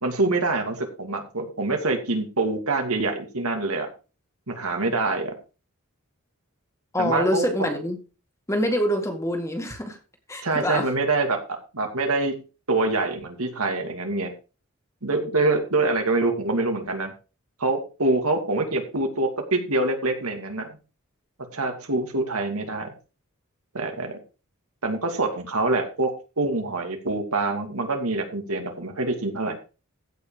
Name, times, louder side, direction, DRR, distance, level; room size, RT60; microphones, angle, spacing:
voice 1, 0.0-3.9 4.5-5.3 7.0-7.7 10.4-11.4 11.7-12.3 12.7-14.3 15.0-17.1 17.6-20.7 21.5-22.9 23.7-24.2 24.8-29.6, right 2 dB, 85° right, 4 dB, 2.6 m, -25 dB
voice 2, 6.9-8.0 8.5-10.0 10.3-10.9, left 1 dB, 15° left, 4 dB, 2.0 m, -25 dB
15.0 x 5.6 x 5.0 m, 0.33 s
head